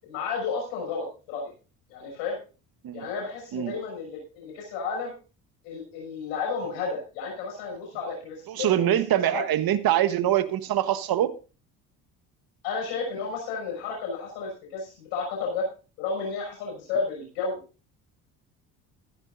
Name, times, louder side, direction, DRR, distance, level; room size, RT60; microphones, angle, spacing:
voice 1, 0.0-1.5 1.9-2.4 2.9-5.1 5.6-9.0 9.3-9.4 12.6-15.6 16.0-17.6, left 4 dB, 75° left, 6.3 m, -32 dB
voice 2, 8.5-11.4, right 12 dB, 50° right, 1.4 m, -24 dB
15.0 x 14.0 x 2.6 m
hypercardioid pair, 60°, 45 cm